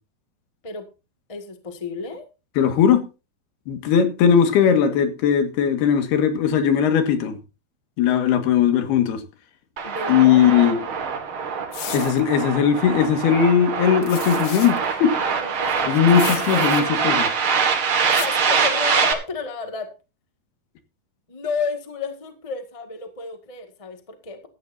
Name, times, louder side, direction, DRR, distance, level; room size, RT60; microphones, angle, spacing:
voice 1, 1.3-2.2 9.8-10.9 15.2-17.1 18.1-19.9 21.3-24.5, left 4 dB, 40° left, 0.4 m, -32 dB
voice 2, 2.6-3.1 3.7-7.4 8.0-9.2 10.1-10.8 11.9-15.2 15.9-17.3, left 8 dB, 90° left, 3.8 m, -18 dB
sound 1, 9.8-19.1, right 6 dB, 45° right, 2.0 m, -24 dB
sound 2, 11.7-12.2 14.0-14.8 16.1-16.8 18.1-18.3, left 11 dB, 65° left, 2.3 m, -34 dB
16.5 x 13.0 x 2.7 m
omnidirectional pair, 4.4 m